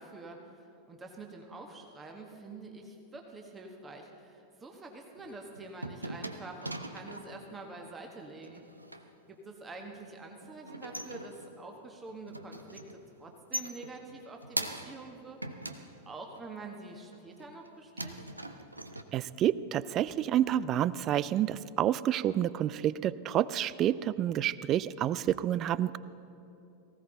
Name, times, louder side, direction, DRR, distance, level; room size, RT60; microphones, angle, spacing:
voice 1, 0.0-8.6 9.3-18.2, right 3 dB, 15° right, 2 dB, 1.3 m, -47 dB
sound 1, 5.2-7.4 8.4-9.1 10.4-11.7 12.1-13.0 13.3-15.1 15.4-16.5 17.1-17.7 18.0-19.0, right 1 dB, 85° right, 0.7 m, -41 dB
voice 2, 19.1-26.0, right 11 dB, 35° right, 19 dB, 0.3 m, -29 dB
19.0 x 16.0 x 3.9 m, 2.8 s
figure-of-eight pair, 90°, 0 cm